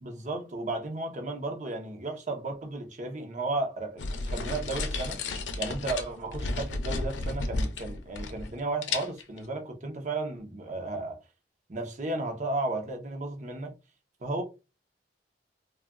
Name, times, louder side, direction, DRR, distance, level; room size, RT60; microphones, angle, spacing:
voice 1, 0.0-5.2 5.6-11.2 11.7-13.7 14.2-14.4, right 2 dB, 40° right, 0.7 m, -34 dB
sound 1, 4.0-8.6 8.8-9.4, left 3 dB, 85° left, 0.5 m, -33 dB
3.6 x 2.3 x 2.2 m
head